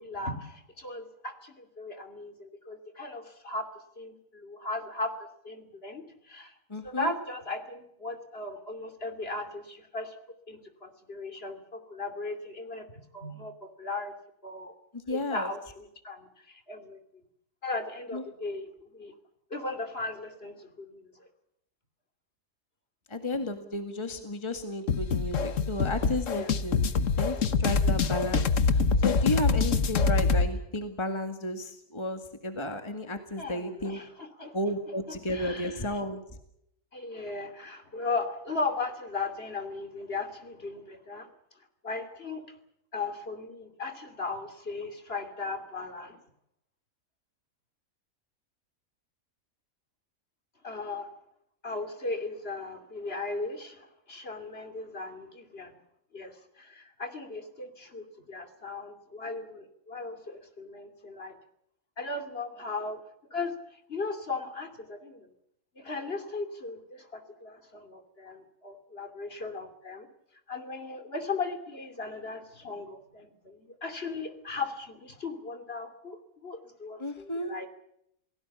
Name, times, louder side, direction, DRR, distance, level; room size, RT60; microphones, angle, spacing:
voice 1, 0.0-3.7 4.0-6.5 6.8-10.1 10.5-12.9 13.1-14.1 14.4-14.7 15.1-17.0 17.6-19.1 19.5-21.3 26.3-26.6 33.4-34.6 35.1-36.0 36.9-41.3 41.8-42.4 42.9-46.2 50.6-51.1 51.6-55.8 56.1-61.4 62.0-63.0 63.3-65.3 65.8-70.1 70.5-76.2 76.4-77.7, left 3 dB, 45° left, 7 dB, 3.0 m, -37 dB
voice 2, 6.7-7.1 14.9-15.5 18.1-18.2 23.1-26.8 27.2-34.0 34.5-36.2 77.0-77.5, left 1 dB, 20° left, 6 dB, 1.9 m, -33 dB
sound 1, 24.9-30.5, left 5 dB, 65° left, 1.5 m, -25 dB
28.0 x 18.0 x 7.2 m, 0.76 s
omnidirectional pair, 1.5 m